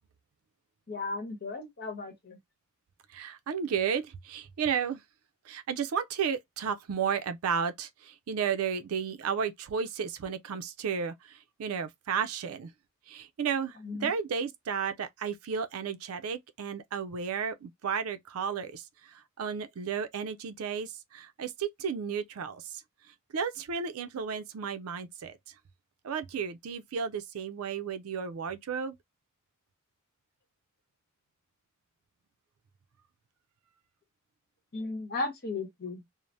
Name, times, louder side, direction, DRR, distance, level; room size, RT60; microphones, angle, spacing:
voice 1, 0.9-2.4 13.8-14.1 34.7-36.0, left 3 dB, 50° left, 0.9 m, -35 dB
voice 2, 3.1-5.0 5.5-12.7 13.1-22.8 23.3-25.4 26.0-29.0, right 6 dB, 80° right, 0.4 m, -33 dB
3.1 x 2.0 x 2.5 m
head